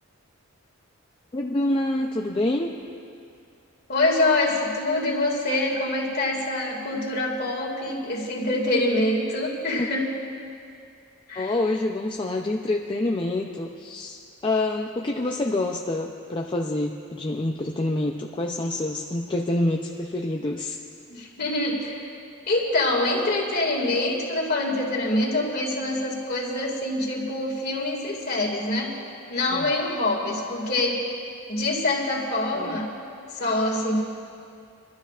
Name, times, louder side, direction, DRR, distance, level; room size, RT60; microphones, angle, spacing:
voice 1, 1.3-2.7 9.7-9.9 11.4-20.8 29.5-29.6 32.5-32.8, left 2 dB, 25° left, 1 dB, 0.5 m, -27 dB
voice 2, 3.9-10.1 11.3-11.5 21.1-22.1 22.5-28.9 29.3-31.0 31.5-32.9 33.3-34.0, left 2 dB, 45° left, -1 dB, 2.1 m, -25 dB
25.5 x 12.0 x 2.4 m, 2.4 s
head